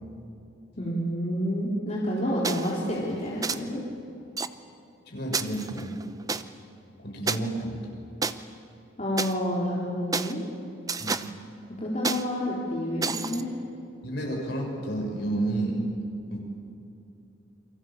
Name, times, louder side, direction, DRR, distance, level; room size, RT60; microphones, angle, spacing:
voice 1, 0.8-3.8 9.0-10.4 11.8-13.5, equal, 35° left, -6 dB, 3.8 m, -29 dB
sound 1, 2.4-2.7 3.4-3.6 4.4-4.5 5.3-6.4 7.3-7.4 8.2-8.3 9.2-9.3 10.1-10.3 10.9-11.3 12.0-12.2 13.0-13.4, right 4 dB, 20° right, 0.6 m, -29 dB
voice 2, 5.1-5.9 7.0-7.9 11.0-11.3 14.0-15.8 16.3-16.4, right 1 dB, 55° left, 0 dB, 6.6 m, -31 dB
29.5 x 24.0 x 7.4 m, 2.7 s
head